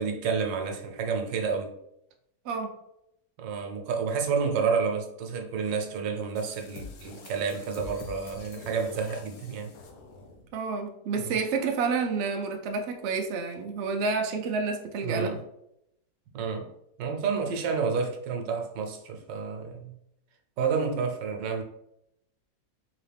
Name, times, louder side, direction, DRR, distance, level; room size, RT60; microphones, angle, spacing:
voice 1, 0.0-1.7 3.4-9.7 11.2-11.3 15.0-15.4 16.3-16.7 17.0-20.0 20.6-21.6, right 5 dB, 90° right, 3 dB, 1.4 m, -30 dB
sound 1, 6.4-10.5, left 3 dB, 70° left, 1.1 m, -45 dB
voice 2, 10.5-15.3, right 4 dB, 70° right, 3 dB, 0.6 m, -29 dB
3.9 x 2.9 x 3.3 m, 0.79 s
omnidirectional pair, 1.9 m